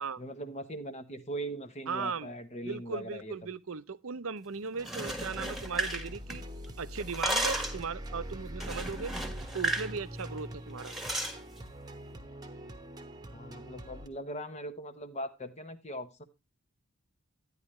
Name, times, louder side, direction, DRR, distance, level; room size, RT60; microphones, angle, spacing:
voice 1, 0.2-3.3 13.3-16.2, right 1 dB, 30° left, 0.9 m, -40 dB
voice 2, 1.9-2.3 2.6-6.4 6.8-9.1 9.5-10.9, right 5 dB, 65° right, 0.7 m, -37 dB
sound 1, 4.7-6.7 7.0-7.9 8.6-9.9 10.2-10.4 10.8-11.4, right 2 dB, ahead, 1.5 m, -34 dB
sound 2, 4.8-14.1, equal, 20° right, 1.1 m, -43 dB
12.0 x 9.9 x 3.1 m
head